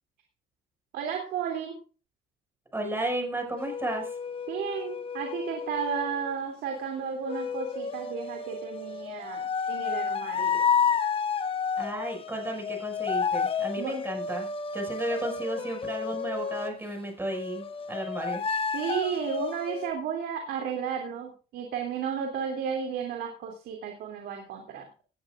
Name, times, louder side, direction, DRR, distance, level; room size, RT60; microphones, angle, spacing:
voice 1, 0.9-1.8 4.5-9.4 9.7-10.6 13.8-14.0 18.7-25.0, right 7 dB, 75° right, 2 dB, 3.0 m, -33 dB
voice 2, 2.7-4.1 11.8-14.5 14.7-18.4, right 1 dB, 15° right, 2 dB, 6.1 m, -33 dB
sound 1, 3.6-6.3 7.3-16.8 17.3-19.9, left 6 dB, 35° left, 1.1 m, -31 dB
18.5 x 11.5 x 2.6 m, 0.36 s
cardioid pair, 110°, 17 cm